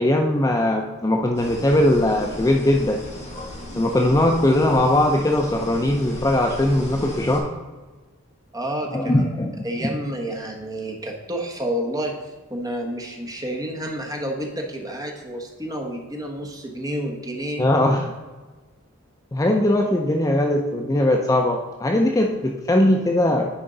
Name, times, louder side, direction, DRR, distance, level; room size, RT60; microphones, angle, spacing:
voice 1, 0.0-3.0 3.8-7.5 8.9-10.0 17.6-18.1 19.3-23.5, left 1 dB, 15° left, 2 dB, 0.4 m, -20 dB
sound 1, 1.3-7.4, left 1 dB, 35° left, 2.0 m, -36 dB
voice 2, 8.5-9.2 9.6-17.6, right 1 dB, 15° right, 1 dB, 1.0 m, -30 dB
10.0 x 4.4 x 3.9 m, 1.3 s
head